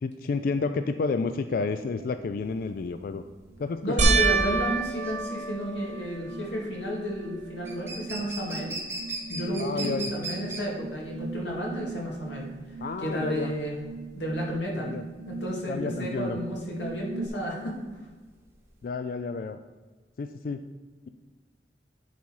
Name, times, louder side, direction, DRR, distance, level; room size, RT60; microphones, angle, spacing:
voice 1, 0.0-3.2 3.6-4.1 9.6-10.1 12.8-13.5 14.7-15.0 15.7-16.4 18.8-19.6 20.2-20.6, left 4 dB, 55° left, 9 dB, 0.3 m, -30 dB
sound 1, 1.7-2.0 2.5-17.3, right 4 dB, 85° right, 1.1 m, -42 dB
sound 2, 2.5-18.8, right 2 dB, 15° right, 1.3 m, -40 dB
voice 2, 3.8-8.7 9.3-12.5 13.0-13.8 14.2-14.9 15.3-17.8, equal, 85° left, -2 dB, 2.3 m, -32 dB
sound 3, 4.0-6.6 7.2-7.8 8.1-8.2 11.4-11.5, right 3 dB, 40° right, 1.3 m, -27 dB
10.5 x 4.2 x 4.7 m, 1.4 s
head